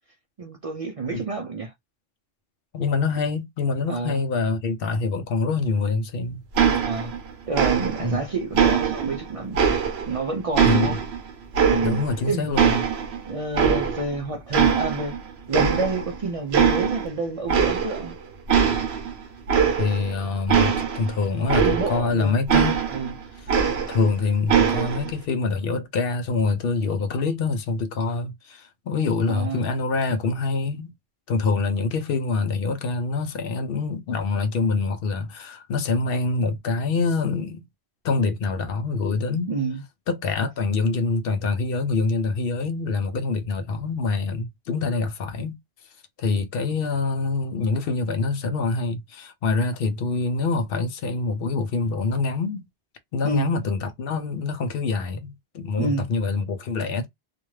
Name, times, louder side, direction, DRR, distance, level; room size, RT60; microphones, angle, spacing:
voice 1, 0.4-1.7 3.9-4.2 6.8-7.1 7.5-11.0 11.7-12.6 13.3-15.2 15.5-18.2 21.4-22.4 22.9-23.1 29.3-29.7 39.5-39.8 53.2-53.5 55.8-56.1, right 3 dB, 50° right, 0.4 m, -28 dB
voice 2, 2.7-6.4 8.0-8.2 10.6-11.0 11.8-12.7 19.7-22.8 23.4-23.5 23.9-30.9 31.3-37.6 38.0-39.5 40.1-45.6 46.2-52.7 53.1-57.1, left 4 dB, 70° left, 0.8 m, -25 dB
sound 1, 6.6-7.3 7.5-8.2 8.6-10.2 10.6-12.2 12.6-14.2 14.5-15.2 15.5-16.2 16.5-17.1 17.5-18.1 18.5-22.1 22.5-24.1 24.5-25.1, right 7 dB, 85° right, 0.9 m, -22 dB
2.4 x 2.2 x 3.1 m
omnidirectional pair, 1.1 m